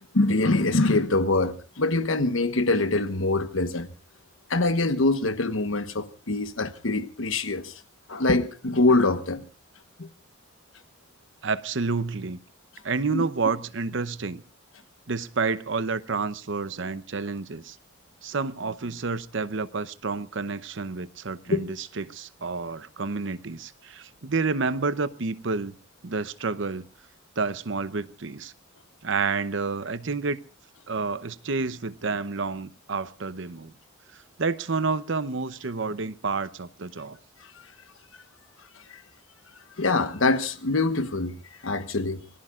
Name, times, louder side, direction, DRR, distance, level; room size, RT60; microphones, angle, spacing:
voice 1, 0.1-3.9 4.5-7.7 8.1-9.5 10.0-10.1 13.1-13.2 21.5-21.6 39.8-41.4 41.6-42.2, left 2 dB, 85° left, 1.2 m, -24 dB
voice 2, 11.4-12.4 12.8-14.4 15.1-17.8 18.2-25.7 26.0-26.8 27.4-28.5 29.0-30.4 30.9-33.7 34.1-37.2, right 4 dB, 65° right, 0.8 m, -29 dB
26.5 x 19.0 x 2.5 m
head